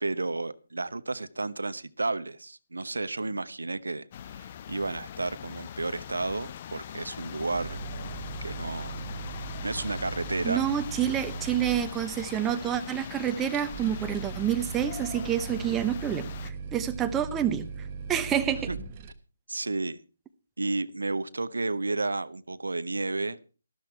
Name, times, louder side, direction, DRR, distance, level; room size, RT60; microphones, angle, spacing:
voice 1, 0.0-4.1 4.3-7.8 8.4-8.9 9.6-10.6 18.7-18.8 19.5-20.0 20.6-23.4, right 3 dB, 70° right, 15 dB, 0.9 m, -32 dB
sound 1, 4.1-16.5, left 9 dB, 35° left, 0.6 m, -41 dB
sound 2, 7.5-19.1, right 5 dB, 30° right, 1.4 m, -39 dB
voice 2, 10.4-17.7 18.1-18.7, right 10 dB, 10° right, 8 dB, 1.0 m, -28 dB
13.0 x 13.0 x 4.6 m, 0.36 s
figure-of-eight pair, 145°, 0 cm